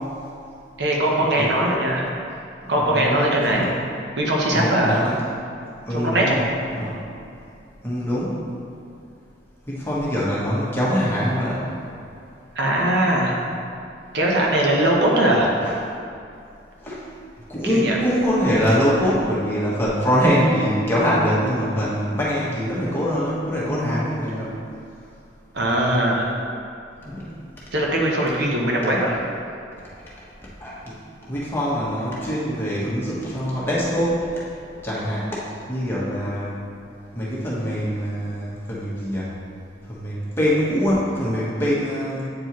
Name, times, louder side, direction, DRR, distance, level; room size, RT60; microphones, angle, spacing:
voice 1, 0.8-2.1 2.7-3.7 4.2-5.0 5.9-6.4 12.5-13.4 14.1-15.5 17.6-18.0 25.5-26.3 27.7-29.2, right 1 dB, 65° right, -2 dB, 0.9 m, -20 dB
voice 2, 2.6-3.7 4.5-5.2 5.9-6.4 6.7-7.0 7.8-8.3 9.7-11.6 15.6-15.8 16.8-17.1 17.5-24.5 27.0-27.3 30.6-31.0 31.3-34.3 34.8-35.4 35.7-36.5 37.1-39.3 39.9-42.3, equal, 15° left, -8 dB, 1.3 m, -23 dB
8.5 x 4.5 x 3.0 m, 2.5 s
head